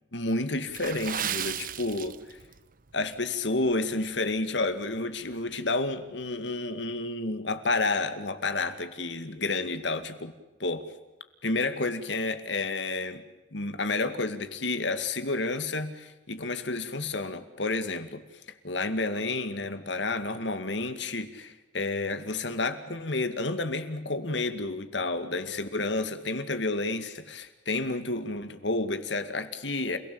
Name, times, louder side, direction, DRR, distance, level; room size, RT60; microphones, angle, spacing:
voice 1, 0.1-2.4 2.9-10.3 10.6-10.9 11.4-13.2 13.5-18.2 18.6-30.0, left 2 dB, 75° left, 2.3 m, -30 dB
Water / Splash splatter, 0.7-2.6 2.9-3.1 3.7-3.9 4.4-4.5, right 9 dB, 50° right, 0.9 m, -34 dB
29.5 x 17.0 x 8.7 m
head